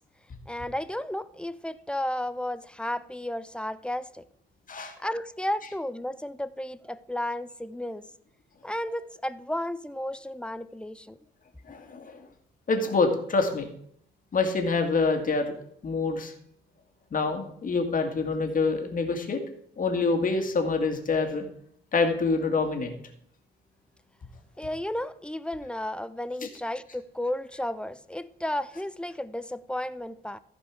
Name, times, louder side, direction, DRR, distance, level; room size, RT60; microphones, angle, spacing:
voice 1, 0.5-4.2 5.0-8.0 8.6-11.2 24.6-30.4, left 1 dB, 5° left, 0.5 m, -33 dB
voice 2, 11.7-12.3 12.7-13.7 14.3-15.5 15.8-16.3 17.1-19.4 19.8-21.5 21.9-22.9, left 4 dB, 45° left, 2.0 m, -26 dB
14.5 x 5.3 x 4.9 m
cardioid pair, 90°, 20 cm